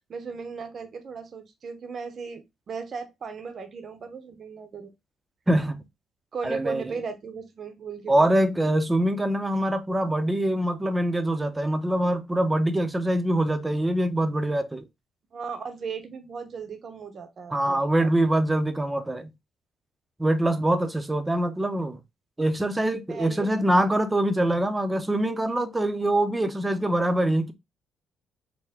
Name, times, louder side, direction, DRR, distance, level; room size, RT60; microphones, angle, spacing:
voice 1, 0.1-4.9 6.3-8.3 15.3-18.1 23.1-23.5, right 5 dB, 45° right, 0.7 m, -37 dB
voice 2, 5.5-5.8 6.4-7.0 8.1-14.8 17.5-19.3 20.2-22.0 22.4-27.5, right 1 dB, 15° right, 0.6 m, -24 dB
4.5 x 2.1 x 3.4 m
cardioid pair, 105°, 0 cm